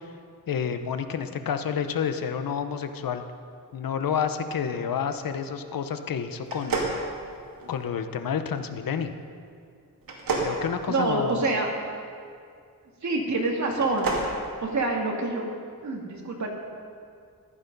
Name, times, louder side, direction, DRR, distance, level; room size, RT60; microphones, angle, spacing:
voice 1, 0.5-3.2 3.7-6.8 7.7-9.1 10.4-11.4, left 7 dB, 75° left, 9 dB, 0.9 m, -29 dB
sound 1, 6.4-7.8 10.0-11.6 13.7-14.3, right 3 dB, 75° right, 2.5 m, -30 dB
voice 2, 10.9-11.7 13.0-14.1 14.6-15.4 15.8-16.5, right 2 dB, 55° right, 0 dB, 2.2 m, -26 dB
15.0 x 11.5 x 5.4 m, 2.3 s
wide cardioid pair, 145°, 35 cm